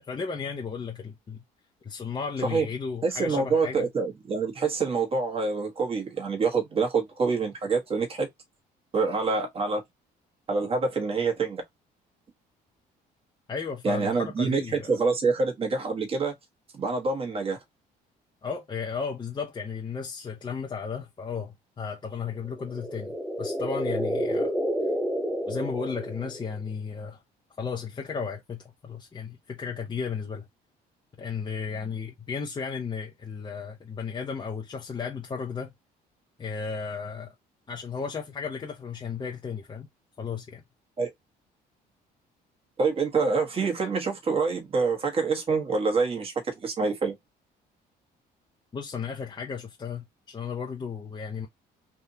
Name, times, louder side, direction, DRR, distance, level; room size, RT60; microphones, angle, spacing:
voice 1, 0.1-1.4 1.8-3.9 13.5-15.0 18.4-24.5 25.5-27.2 27.6-30.5 31.2-35.7 36.4-37.3 37.7-39.9 40.2-40.6 48.7-51.5, left 5 dB, 25° left, 0.8 m, -34 dB
voice 2, 3.0-8.3 8.9-9.8 10.5-11.6 13.8-16.3 16.7-17.6 41.0-41.1 42.8-47.2, right 4 dB, 35° right, 1.5 m, -26 dB
sound 1, 22.5-26.7, equal, 5° right, 0.6 m, -30 dB
3.4 x 2.6 x 2.7 m
cardioid pair, 110°, 17 cm